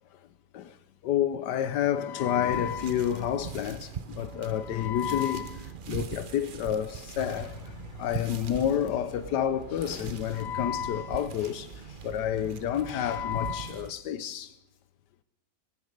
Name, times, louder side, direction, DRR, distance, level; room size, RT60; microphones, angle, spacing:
voice 1, 1.0-7.6 8.0-11.7 12.0-14.5, left 10 dB, 80° left, 1.4 m, -29 dB
sound 1, 2.5-13.9, right 6 dB, 55° right, 0.6 m, -41 dB
sound 2, 7.1-12.2 12.7-12.8, left 1 dB, 35° left, 4.0 m, -49 dB
20.5 x 9.7 x 6.6 m
omnidirectional pair, 1.8 m